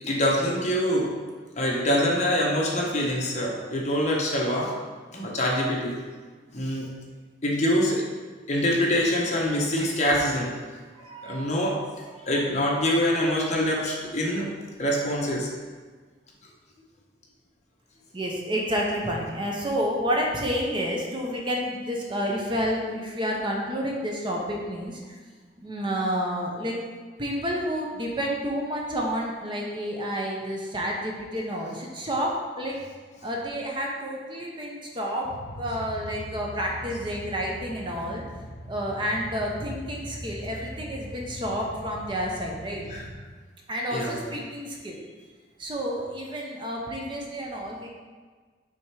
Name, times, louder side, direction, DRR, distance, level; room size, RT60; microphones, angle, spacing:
voice 1, 0.0-1.1 1.6-4.7 5.1-6.0 6.5-6.9 7.4-8.0 8.5-10.5 11.2-11.8 12.3-14.5 14.8-15.5 42.9-43.0 43.9-44.3, equal, 40° left, -2 dB, 1.0 m, -25 dB
voice 2, 11.0-11.5 12.1-12.3 18.1-25.0 25.6-26.7 27.2-32.7 33.2-35.3 35.6-38.2 38.6-42.8 43.7-45.0 45.6-47.9, equal, 30° right, -1 dB, 0.8 m, -30 dB
sound 1, 35.2-43.2, equal, 70° left, 1.4 m, -41 dB
6.2 x 3.5 x 4.7 m, 1.5 s
head